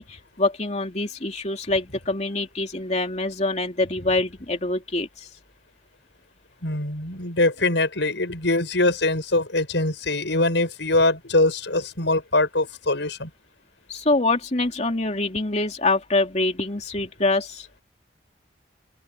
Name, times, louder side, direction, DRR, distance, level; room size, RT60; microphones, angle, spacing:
voice 1, 0.0-5.3 13.9-17.7, left 2 dB, 35° left, 2.9 m, -25 dB
voice 2, 6.6-13.3, left 2 dB, 70° left, 6.3 m, -23 dB
open air
head